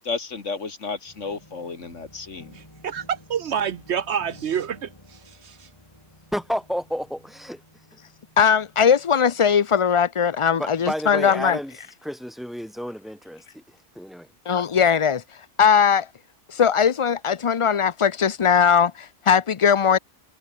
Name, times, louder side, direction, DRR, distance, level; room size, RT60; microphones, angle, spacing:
voice 1, 0.0-2.6, left 4 dB, 75° left, 2.5 m, -32 dB
sound 1, 1.1-9.6, left 1 dB, 20° left, 5.3 m, -52 dB
voice 2, 2.5-5.7, right 8 dB, 65° right, 1.0 m, -28 dB
voice 3, 6.3-7.6 10.6-11.7 12.0-14.3, equal, ahead, 5.0 m, -31 dB
voice 4, 8.4-11.6 14.5-16.1 16.5-20.0, left 7 dB, 55° left, 0.3 m, -19 dB
omnidirectional pair, 1.3 m